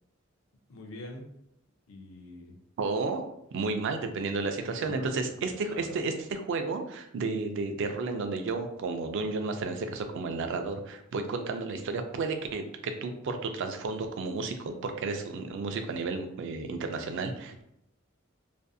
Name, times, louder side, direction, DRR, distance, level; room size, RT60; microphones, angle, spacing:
voice 1, 0.7-1.2 1.9-2.6 4.8-6.0, left 1 dB, 75° left, 3 dB, 0.5 m, -44 dB
voice 2, 2.8-17.6, right 3 dB, 65° right, 6 dB, 0.3 m, -32 dB
2.5 x 2.5 x 2.3 m, 0.77 s
head